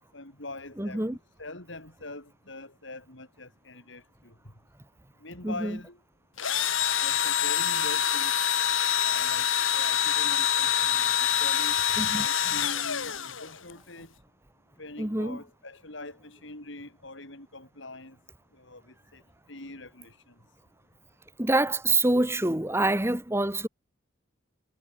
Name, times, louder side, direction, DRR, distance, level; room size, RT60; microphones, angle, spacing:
voice 1, 0.1-1.0 1.4-4.3 5.2-6.0 7.0-8.3 9.0-14.1 14.8-18.2 18.6-19.2 19.5-20.3, left 2 dB, 70° left, 6.5 m, -43 dB
voice 2, 0.8-1.2 5.4-5.8 12.0-12.3 15.0-15.4 21.4-23.7, right 2 dB, 15° right, 1.4 m, -26 dB
Engine / Drill, 6.4-13.7, left 9 dB, 90° left, 5.2 m, -26 dB
head